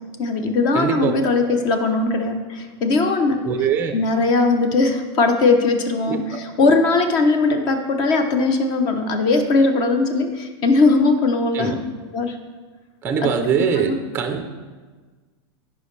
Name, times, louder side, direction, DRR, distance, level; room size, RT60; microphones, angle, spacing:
voice 1, 0.2-3.4 3.9-11.8 12.1-12.4 13.2-13.3 13.9-14.0, left 3 dB, 30° left, 6 dB, 0.8 m, -19 dB
voice 2, 0.7-1.1 1.4-1.6 3.4-3.9 6.1-6.4 11.5-11.8 13.0-14.6, right 7 dB, 15° right, 6 dB, 0.5 m, -23 dB
15.5 x 5.2 x 3.2 m, 1.4 s
supercardioid pair, 165°, 14 cm